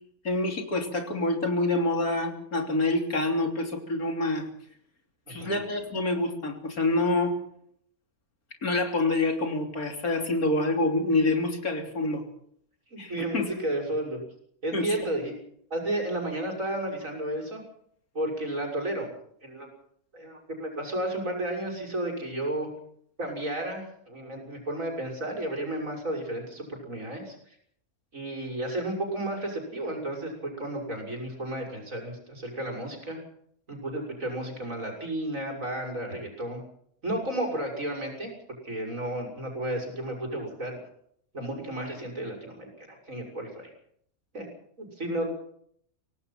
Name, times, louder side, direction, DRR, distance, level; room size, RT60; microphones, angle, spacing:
voice 1, 0.2-4.5 5.3-7.4 8.6-12.2 13.0-13.6 14.7-15.0, left 2 dB, 80° left, 4 dB, 3.7 m, -27 dB
voice 2, 5.3-5.6 12.9-14.2 14.6-15.3 15.7-17.6 18.1-19.1 19.4-19.7 20.1-22.7 23.2-27.4 28.1-33.2 33.7-36.6 37.0-38.3 38.6-40.8 41.3-43.7 44.3-44.5 44.8-45.3, right 1 dB, 65° right, 0 dB, 6.6 m, -32 dB
25.0 x 18.0 x 5.8 m, 0.66 s
omnidirectional pair, 1.5 m